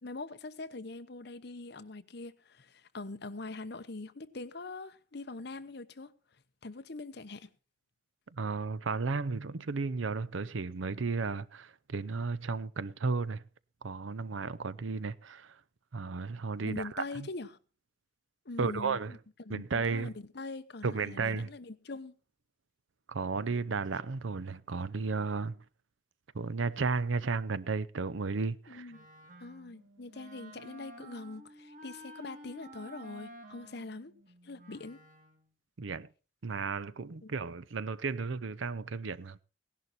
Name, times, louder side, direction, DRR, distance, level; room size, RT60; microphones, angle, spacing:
voice 1, 0.0-6.1 6.6-7.5 16.6-17.6 18.4-22.1 28.7-29.1 29.4-34.1 34.4-35.0 37.2-37.4, left 3 dB, 60° left, 0.9 m, -43 dB
voice 2, 8.3-13.4 13.8-15.6 15.9-17.3 18.6-19.2 19.5-20.1 20.8-21.5 23.1-25.6 26.3-28.9 35.8-36.1 36.4-39.4, right 4 dB, 85° right, 0.6 m, -34 dB
Wind instrument woodwind instrument, 28.9-35.5, right 1 dB, 45° right, 2.2 m, -52 dB
17.0 x 11.0 x 4.2 m
head